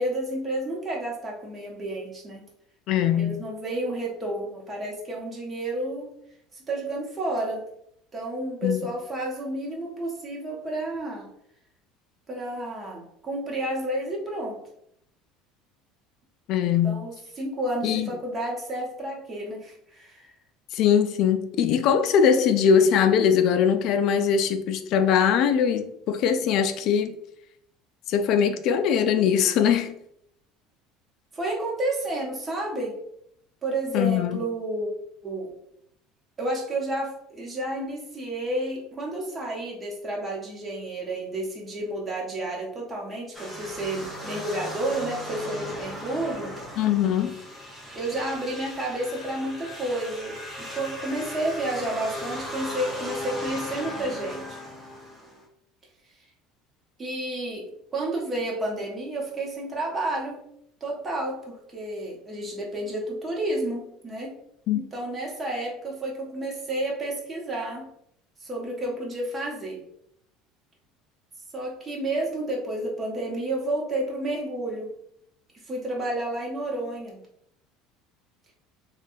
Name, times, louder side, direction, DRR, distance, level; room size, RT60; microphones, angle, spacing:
voice 1, 0.0-2.4 3.1-6.1 6.5-7.7 8.1-11.3 12.3-14.6 16.8-20.3 31.3-33.0 33.6-34.9 35.2-35.5 36.4-46.5 47.9-54.6 57.0-60.4 60.8-64.3 64.7-67.9 68.4-69.8 71.5-74.9 75.7-77.2, right 1 dB, 20° right, 0.9 m, -31 dB
voice 2, 2.9-3.4 8.6-8.8 16.5-17.0 17.8-18.1 20.7-27.2 28.1-30.0 33.9-34.4 46.8-47.3 64.7-64.8, left 7 dB, 60° left, 0.3 m, -21 dB
sound 1, 43.3-55.4, left 1 dB, 5° left, 0.9 m, -37 dB
3.3 x 2.2 x 2.5 m
supercardioid pair, 115°, 0 cm